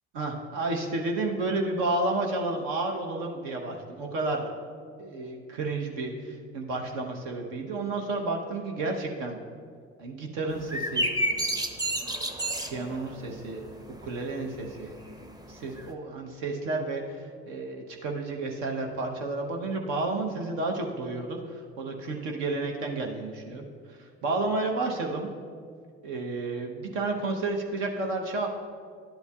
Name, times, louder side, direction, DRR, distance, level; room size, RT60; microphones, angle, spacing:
voice 1, 0.1-4.5 5.0-9.4 10.0-11.1 12.7-13.7 14.0-14.9 15.5-25.3 26.0-28.5, right 2 dB, 70° right, 2 dB, 0.9 m, -31 dB
sound 1, 10.5-15.9, right 1 dB, 15° right, 0.7 m, -32 dB
11.5 x 7.9 x 2.3 m, 2.1 s
hypercardioid pair, 65°, 31 cm